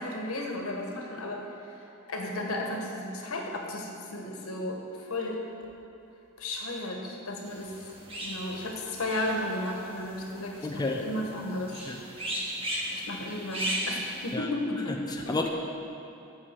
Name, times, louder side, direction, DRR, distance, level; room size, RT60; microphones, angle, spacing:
voice 1, 0.0-1.5 2.1-5.4 6.4-7.8 8.2-11.8 12.9-15.3, left 1 dB, 80° left, 1 dB, 1.4 m, -34 dB
sound 1, 7.5-14.3, equal, 25° right, 1.6 m, -37 dB
voice 2, 10.6-11.0 11.9-12.0 14.3-14.5 14.9-15.5, left 3 dB, 20° left, 1 dB, 0.6 m, -31 dB
8.4 x 7.0 x 7.4 m, 2.7 s
head